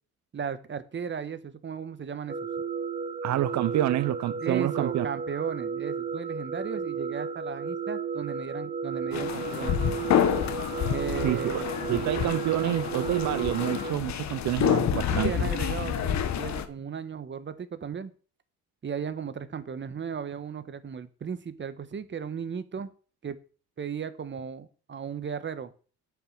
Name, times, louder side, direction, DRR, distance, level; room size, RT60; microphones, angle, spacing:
voice 1, 0.3-2.4 4.4-9.8 10.9-11.7 15.1-18.1 18.8-22.9 23.2-23.4 23.8-25.7, right 6 dB, 40° right, 1.3 m, -35 dB
sound 1, 2.3-13.9, right 5 dB, 25° right, 0.6 m, -33 dB
voice 2, 3.2-5.1 11.2-11.6 11.9-15.3, right 14 dB, 65° right, 0.5 m, -28 dB
sound 2, 9.1-16.7, left 9 dB, 65° left, 1.2 m, -28 dB
8.7 x 6.0 x 7.5 m
cardioid pair, 90°, 30 cm